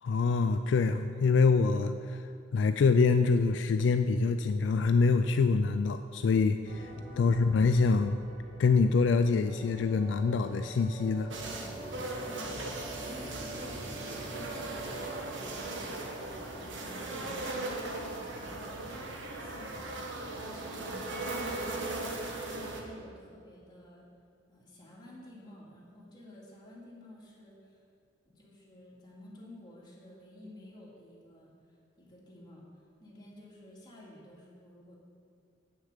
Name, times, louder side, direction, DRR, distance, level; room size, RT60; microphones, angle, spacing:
voice 1, 0.0-2.2 2.5-6.9 7.2-8.2 8.6-11.3 22.3-22.5, left 4 dB, 70° left, 8 dB, 0.3 m, -25 dB
sound 1, 6.7-16.1, right 1 dB, 55° right, 1.8 m, -45 dB
sound 2, 11.3-22.8, right 2 dB, 85° right, 1.2 m, -38 dB
voice 2, 12.2-15.5 16.8-17.3 18.1-20.0 20.4-21.9 22.4-24.1 24.5-27.8 28.3-35.0, left 1 dB, 25° left, -5 dB, 2.2 m, -52 dB
8.2 x 6.5 x 6.6 m, 2.3 s
head